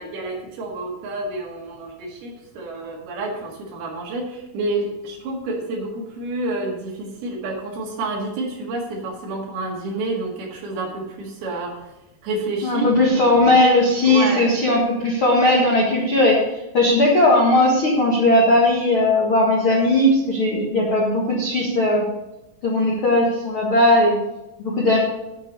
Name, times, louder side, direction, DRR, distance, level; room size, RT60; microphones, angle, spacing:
voice 1, 0.0-11.9 12.2-12.9 14.0-14.5, right 2 dB, 60° right, -1 dB, 3.5 m, -29 dB
voice 2, 12.6-16.4 16.7-22.0 22.6-24.1 24.6-25.0, left 1 dB, 80° left, -3 dB, 1.2 m, -17 dB
9.8 x 7.7 x 5.4 m, 0.94 s
omnidirectional pair, 5.3 m